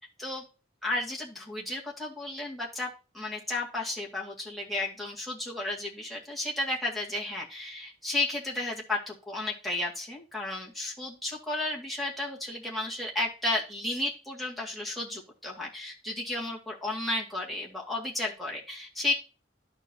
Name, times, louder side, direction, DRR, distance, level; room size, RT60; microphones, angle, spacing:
voice 1, 0.8-19.1, left 2 dB, ahead, -5 dB, 2.0 m, -33 dB
13.0 x 4.5 x 2.8 m, 0.31 s
head